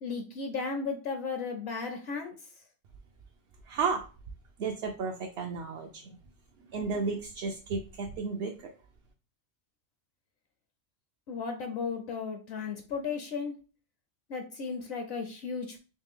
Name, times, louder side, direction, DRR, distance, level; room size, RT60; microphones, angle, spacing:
voice 1, 0.0-2.3 11.3-13.5 14.3-15.8, left 5 dB, 65° left, 4 dB, 0.8 m, -35 dB
voice 2, 3.6-4.1 4.6-6.2 6.7-8.7, right 5 dB, 65° right, 2 dB, 0.8 m, -33 dB
3.3 x 3.0 x 3.5 m, 0.36 s
omnidirectional pair, 1.2 m